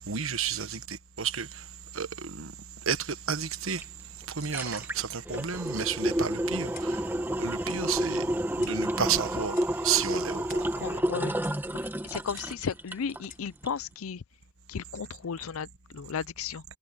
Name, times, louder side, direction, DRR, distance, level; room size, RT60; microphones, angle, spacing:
voice 1, 0.1-1.5 1.9-2.5 2.9-3.8 4.4-7.0 7.4-8.2 8.6-9.6 9.8-10.6, right 7 dB, 75° right, 1.3 m, -31 dB
sound 1, 3.8-3.9 4.2-13.3 13.7-13.8, right 1 dB, 10° right, 1.3 m, -30 dB
Clock, 6.8-7.1 7.7-7.9 8.6-8.9 9.6-9.8 10.5-10.8 11.4-11.6 12.4-12.6 13.3-13.5, left 10 dB, 45° left, 5.0 m, -51 dB
voice 2, 10.8-11.3 12.0-14.2 14.7-16.6, left 6 dB, 85° left, 0.5 m, -35 dB
head